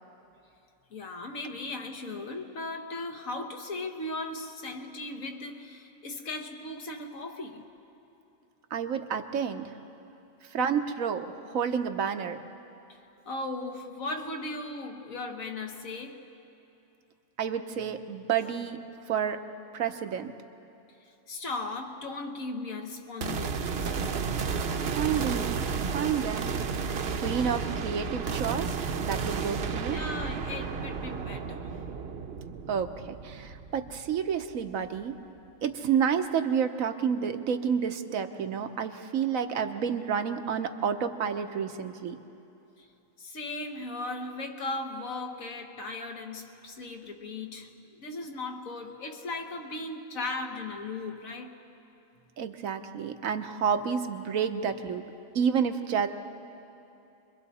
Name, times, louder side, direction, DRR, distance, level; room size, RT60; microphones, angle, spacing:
voice 1, 0.9-7.6 10.1-10.2 12.9-13.0 13.3-16.3 18.9-19.1 21.0-23.9 29.9-31.7 42.8-42.9 43.2-51.6 54.3-54.4, left 2 dB, 85° left, 1.8 m, -37 dB
voice 2, 8.7-9.7 10.5-12.4 17.4-18.8 19.1-19.4 19.7-20.3 24.8-26.5 26.8-30.0 32.7-35.2 35.6-42.2 52.4-55.1 55.3-56.1, right 7 dB, 90° right, 1.3 m, -30 dB
sound 1, 23.2-34.6, right 5 dB, 55° right, 0.9 m, -32 dB
29.0 x 22.5 x 4.2 m
omnidirectional pair, 1.4 m